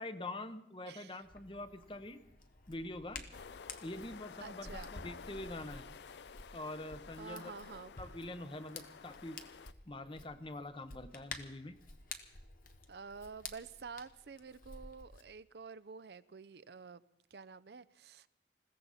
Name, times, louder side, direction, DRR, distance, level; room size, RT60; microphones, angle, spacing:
voice 1, 0.0-2.2 2.7-3.2 3.8-5.8 6.5-7.5 8.0-9.4 9.9-11.7, left 2 dB, 30° left, 0.8 m, -45 dB
voice 2, 0.9-1.2 4.4-4.9 7.2-8.0 12.9-17.0 17.3-18.3, right 5 dB, 70° right, 0.5 m, -49 dB
Hands, 1.2-15.2, left 4 dB, 50° left, 1.2 m, -52 dB
sound 1, 3.3-9.7, left 6 dB, 75° left, 0.5 m, -52 dB
20.5 x 16.0 x 4.1 m
head